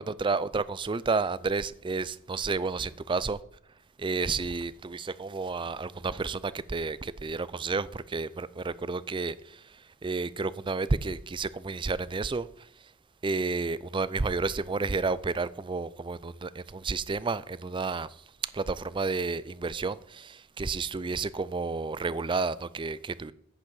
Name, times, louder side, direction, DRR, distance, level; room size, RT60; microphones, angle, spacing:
voice 1, 0.0-3.4 4.0-9.6 10.0-12.5 13.2-18.1 18.5-23.3, right 4 dB, 20° right, 0.4 m, -31 dB
10.0 x 6.6 x 7.2 m
head